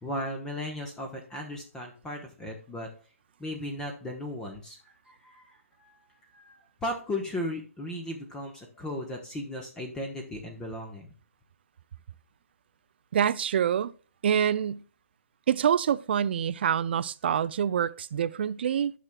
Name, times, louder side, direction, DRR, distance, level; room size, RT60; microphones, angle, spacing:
voice 1, 0.0-2.9 3.4-11.1, left 1 dB, 10° left, 0.9 m, -36 dB
voice 2, 13.1-13.9 14.2-14.8 15.5-18.9, right 8 dB, 45° right, 0.4 m, -26 dB
11.5 x 6.2 x 2.2 m
hypercardioid pair, 150°, 8 cm